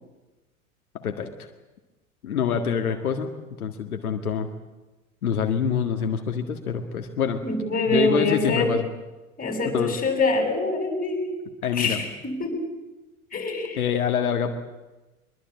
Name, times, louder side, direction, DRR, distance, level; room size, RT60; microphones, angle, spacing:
voice 1, 0.9-1.3 2.2-3.3 3.6-4.5 5.2-7.4 7.9-8.8 9.7-10.0 11.6-12.0 13.8-14.5, left 7 dB, 75° left, 5 dB, 1.9 m, -25 dB
voice 2, 7.4-8.7 9.4-11.4 11.7-12.5 13.3-13.8, left 2 dB, 20° left, 4 dB, 8.0 m, -25 dB
23.0 x 22.0 x 8.6 m, 1.1 s
figure-of-eight pair, 90°, 43 cm